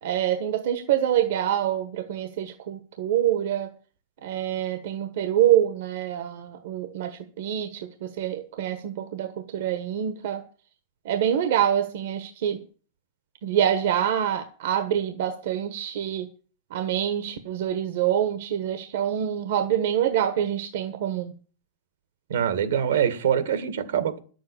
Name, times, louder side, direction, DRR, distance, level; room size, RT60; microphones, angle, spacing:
voice 1, 0.0-3.7 4.2-10.4 11.0-12.6 13.4-16.3 16.7-21.3, right 10 dB, 70° right, 9 dB, 1.3 m, -26 dB
voice 2, 22.3-24.2, right 9 dB, 85° right, 12 dB, 2.1 m, -24 dB
10.5 x 7.8 x 8.6 m, 0.41 s
supercardioid pair, 140°, 0 cm